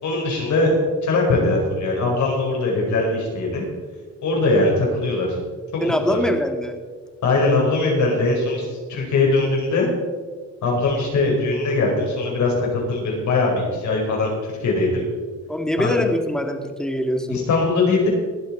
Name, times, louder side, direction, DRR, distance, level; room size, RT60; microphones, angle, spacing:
voice 1, 0.0-3.6 4.2-5.4 5.7-6.2 7.2-9.9 10.6-15.0 15.8-16.0 17.3-18.1, left 3 dB, 70° left, -1 dB, 4.8 m, -21 dB
voice 2, 5.8-6.7 15.5-17.4, left 1 dB, ahead, 5 dB, 1.7 m, -23 dB
21.5 x 7.6 x 4.4 m, 1.5 s
cardioid pair, 90°, 30 cm